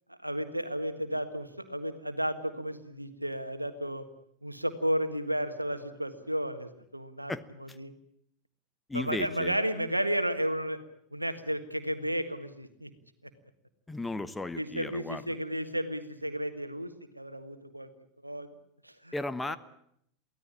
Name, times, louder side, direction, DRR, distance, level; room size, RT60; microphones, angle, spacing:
voice 1, 0.1-4.0 4.4-7.3 7.6-7.9 8.9-10.8 11.1-12.9 14.5-17.9 18.2-18.5 18.8-19.1 19.5-19.6, equal, 90° right, 10 dB, 1.6 m, -33 dB
voice 2, 8.9-9.6 13.9-15.2 19.1-19.6, left 2 dB, 10° left, 13 dB, 1.1 m, -35 dB
23.5 x 16.0 x 8.8 m, 0.71 s
figure-of-eight pair, 85°, 0 cm